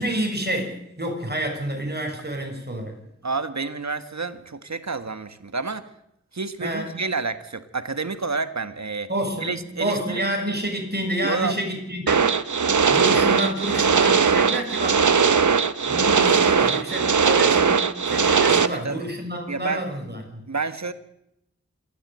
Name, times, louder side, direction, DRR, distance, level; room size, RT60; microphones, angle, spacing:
voice 1, 0.0-3.0 6.6-6.9 9.1-12.2 12.9-15.4 15.9-20.5, equal, 35° right, 3 dB, 6.7 m, -29 dB
voice 2, 3.2-5.9 6.3-9.1 9.4-10.2 11.2-11.6 18.6-19.1 19.5-19.8 20.5-20.9, right 4 dB, 70° right, 10 dB, 1.5 m, -29 dB
sound 1, 12.1-18.7, right 5 dB, 85° right, 0.8 m, -19 dB
27.5 x 12.5 x 8.1 m, 0.80 s
wide cardioid pair, 40°, 29 cm